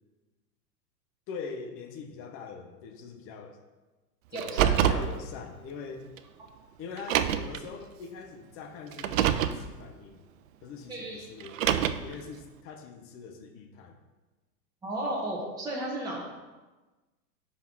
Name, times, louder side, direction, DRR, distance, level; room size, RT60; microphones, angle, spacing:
voice 1, 1.3-3.6 4.3-6.1 6.8-10.2 10.6-11.6 12.0-14.0, left 5 dB, 25° left, 5 dB, 0.8 m, -42 dB
voice 2, 4.3-5.0 10.9-11.3 14.8-16.2, right 1 dB, 10° right, -5 dB, 1.3 m, -34 dB
Car, 4.4-5.1 6.2-6.3 7.0-7.6 8.9-9.6 11.4-12.1, right 10 dB, 55° right, 0.5 m, -25 dB
5.4 x 5.0 x 6.0 m, 1.2 s
hypercardioid pair, 105°, 48 cm